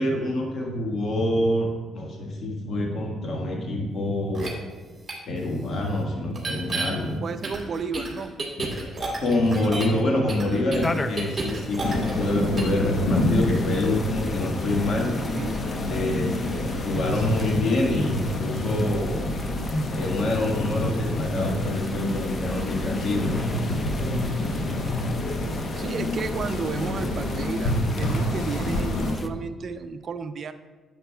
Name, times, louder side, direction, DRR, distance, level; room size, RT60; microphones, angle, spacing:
voice 1, 0.0-1.7 1.9-4.5 5.3-7.2 8.6-8.7 9.2-15.1 15.8-16.5 16.8-19.2 19.9-23.3, left 1 dB, 60° left, 0 dB, 1.6 m, -26 dB
sound 1, 4.3-4.5 5.1-5.2 6.3-6.9 7.4-10.0 10.3-12.3 12.6-12.8, right 3 dB, 30° right, 2.2 m, -31 dB
voice 2, 7.2-8.3 15.3-15.8 25.8-30.5, right 5 dB, 50° right, 9 dB, 0.5 m, -32 dB
sound 2, 10.8-29.3, left 2 dB, 25° left, 0.4 m, -40 dB
sound 3, 11.8-29.2, left 1 dB, 75° left, 1.1 m, -27 dB
10.5 x 7.3 x 2.3 m, 1.4 s
cardioid pair, 90°, 0 cm